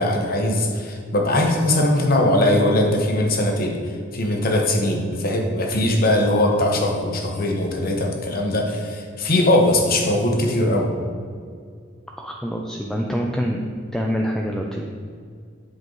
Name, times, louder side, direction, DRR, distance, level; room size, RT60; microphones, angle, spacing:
voice 1, 0.0-10.9, left 1 dB, 50° left, 2 dB, 1.0 m, -20 dB
voice 2, 12.2-13.6 13.9-14.8, equal, 5° left, 0 dB, 0.4 m, -25 dB
8.0 x 5.4 x 3.9 m, 2.2 s
head